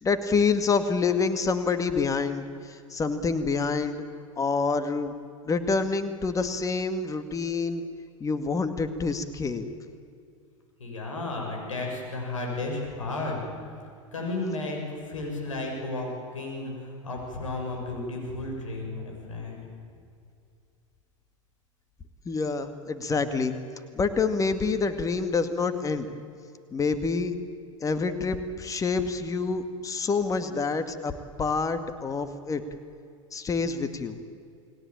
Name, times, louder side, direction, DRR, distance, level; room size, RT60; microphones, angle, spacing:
voice 1, 0.0-4.0 4.4-5.1 5.4-7.8 8.2-9.7 22.3-23.6 23.9-26.1 26.7-27.4 27.8-31.1 31.4-32.6 33.3-34.2, left 4 dB, 20° left, 9 dB, 2.1 m, -27 dB
voice 2, 10.8-13.4 14.1-19.6, left 2 dB, 75° left, 0 dB, 7.4 m, -33 dB
29.5 x 20.5 x 8.9 m, 2.4 s
figure-of-eight pair, 85°, 17 cm